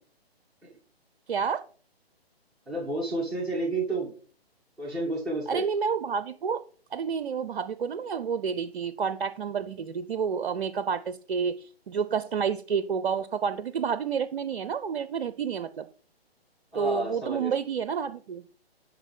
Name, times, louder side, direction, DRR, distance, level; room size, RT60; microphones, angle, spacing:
voice 1, 1.3-1.6 5.5-6.6 6.9-11.5 11.9-15.8 16.7-18.4, right 6 dB, 55° right, 13 dB, 0.6 m, -29 dB
voice 2, 2.7-4.1 4.8-5.6 16.7-17.5, right 2 dB, ahead, -7 dB, 1.7 m, -30 dB
11.0 x 4.0 x 5.1 m, 0.41 s
figure-of-eight pair, 140°, 32 cm